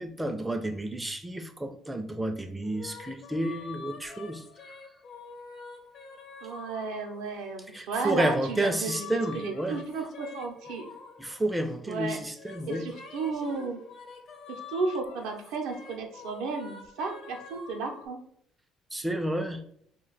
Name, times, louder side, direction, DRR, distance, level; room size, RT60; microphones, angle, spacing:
voice 1, 0.0-4.7 7.7-9.8 11.2-12.9 18.9-19.6, right 1 dB, 10° right, 7 dB, 0.4 m, -31 dB
sound 1, 2.6-7.6 8.1-11.8 12.1-18.1, left 5 dB, 55° left, 0.5 m, -47 dB
voice 2, 6.4-10.9 11.9-12.2 12.7-13.8 14.7-18.2, right 4 dB, 80° right, 2 dB, 0.5 m, -33 dB
2.4 x 2.2 x 3.8 m, 0.67 s
supercardioid pair, 80°, 0 cm